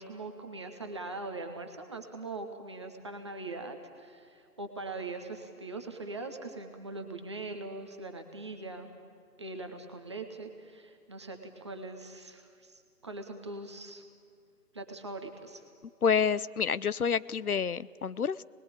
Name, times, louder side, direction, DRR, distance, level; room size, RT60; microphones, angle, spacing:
voice 1, 0.0-8.9 9.4-14.0 14.7-15.6, right 2 dB, 20° right, 4 dB, 1.0 m, -41 dB
voice 2, 16.0-18.4, left 6 dB, 65° left, 19 dB, 0.7 m, -28 dB
27.0 x 20.0 x 8.8 m, 2.2 s
figure-of-eight pair, 150°, 47 cm